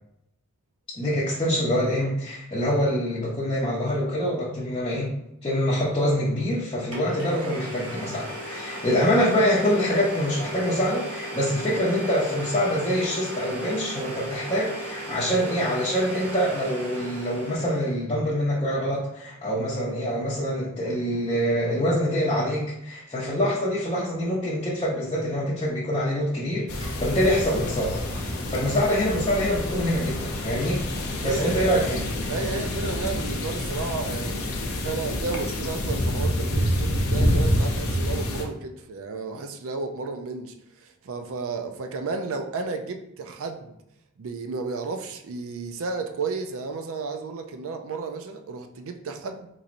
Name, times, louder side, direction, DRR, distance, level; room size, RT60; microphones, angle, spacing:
voice 1, 0.9-5.1 5.4-28.0 28.5-30.8 31.2-32.1, equal, 25° left, -8 dB, 0.7 m, -25 dB
Domestic sounds home sounds, 6.4-6.5 6.9-18.0, right 1 dB, 85° right, 1.0 m, -36 dB
sound 1, 26.7-38.4, left 1 dB, 70° left, 0.7 m, -27 dB
sound 2, 26.7-32.7, equal, 20° right, 0.6 m, -42 dB
voice 2, 31.2-31.6 32.3-43.8 44.2-49.5, right 4 dB, 65° right, 6 dB, 0.4 m, -33 dB
4.0 x 3.0 x 2.5 m, 0.81 s
head